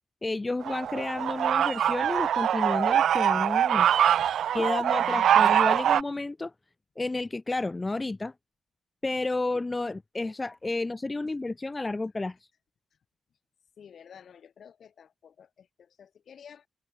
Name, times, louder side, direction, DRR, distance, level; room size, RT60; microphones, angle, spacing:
voice 1, 0.2-3.9 4.5-6.5 7.0-8.3 9.0-12.5, left 2 dB, 15° left, 0.9 m, -31 dB
sound 1, 0.6-6.0, right 10 dB, 75° right, 0.6 m, -23 dB
voice 2, 13.8-16.7, left 7 dB, 55° left, 7.9 m, -52 dB
open air
wide cardioid pair, 160°, 0 cm